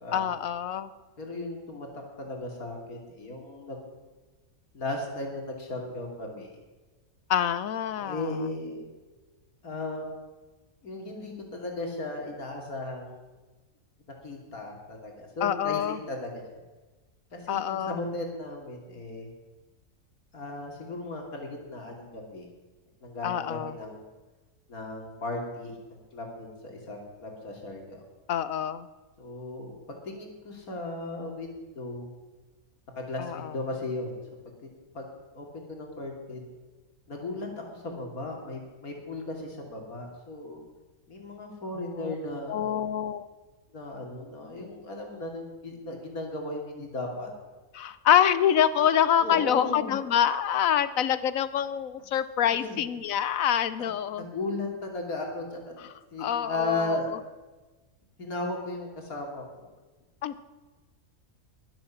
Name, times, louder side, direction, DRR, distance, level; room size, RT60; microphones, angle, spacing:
voice 1, 0.1-0.9 7.3-8.4 15.4-16.0 17.5-18.0 23.2-23.8 28.3-28.9 33.2-33.5 41.8-42.1 42.5-43.3 47.7-54.3 56.2-57.2 60.2-60.3, left 9 dB, 70° left, 15 dB, 1.1 m, -26 dB
voice 2, 1.2-1.9 2.2-3.8 4.7-6.6 8.0-8.8 9.6-10.0 10.8-13.2 14.2-16.4 17.3-19.3 20.3-22.5 23.0-24.0 24.7-28.0 29.2-29.8 30.0-32.1 33.0-34.1 34.6-34.7 34.9-35.1 35.3-36.4 37.1-40.6 41.1-42.8 43.7-47.3 49.2-50.0 52.5-52.8 53.8-55.7 56.1-57.1 58.2-59.7, left 2 dB, 90° left, 1 dB, 3.1 m, -36 dB
21.5 x 7.7 x 7.1 m, 1.2 s
omnidirectional pair, 1.5 m